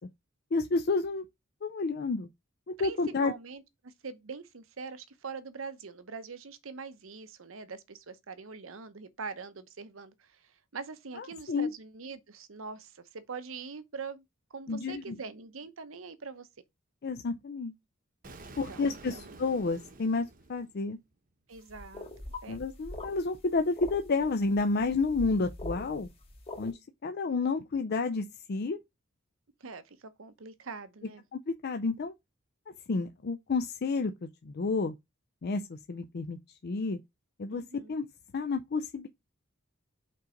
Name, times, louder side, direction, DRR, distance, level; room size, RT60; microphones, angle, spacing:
voice 1, 0.5-1.2 1.6-2.3 2.7-3.3 11.2-11.7 14.7-15.2 17.0-17.7 18.6-21.0 22.5-26.1 26.6-28.8 31.3-32.1 32.9-34.1 34.4-34.9 35.4-36.4 36.6-37.0 37.4-37.6 37.9-38.0 38.3-39.1, left 3 dB, 50° left, 0.4 m, -30 dB
voice 2, 2.8-14.2 14.5-16.5 18.4-19.4 21.5-22.1 22.4-22.6 29.6-31.2 37.5-38.0, right 5 dB, 80° right, 0.8 m, -43 dB
Explosion, 18.2-21.1, right 3 dB, 45° right, 0.9 m, -50 dB
sound 1, 21.6-26.7, left 2 dB, 30° left, 1.8 m, -43 dB
5.4 x 3.9 x 5.0 m
head